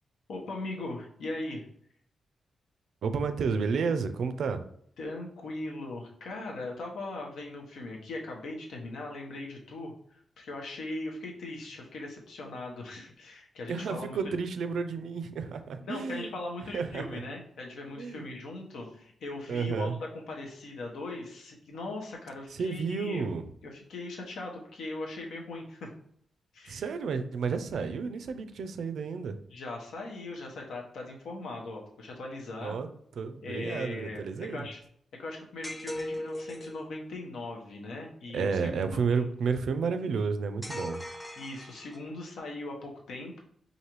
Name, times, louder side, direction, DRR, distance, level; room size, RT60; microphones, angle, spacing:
voice 1, 0.3-1.6 5.0-14.2 15.8-23.4 23.6-25.9 26.5-26.8 29.5-32.8 33.4-34.8 35.2-39.2 41.4-43.4, left 2 dB, 85° left, 0 dB, 0.9 m, -39 dB
voice 2, 3.0-4.6 13.7-16.4 16.7-17.2 17.9-18.3 19.5-20.0 22.5-23.4 26.7-29.4 32.6-32.9 33.2-34.7 38.3-41.0, right 5 dB, 75° right, 9 dB, 0.4 m, -31 dB
sound 1, 35.6-36.8 40.6-42.2, left 1 dB, 5° left, 0.5 m, -38 dB
4.8 x 2.6 x 3.0 m, 0.65 s
cardioid pair, 110°, 0 cm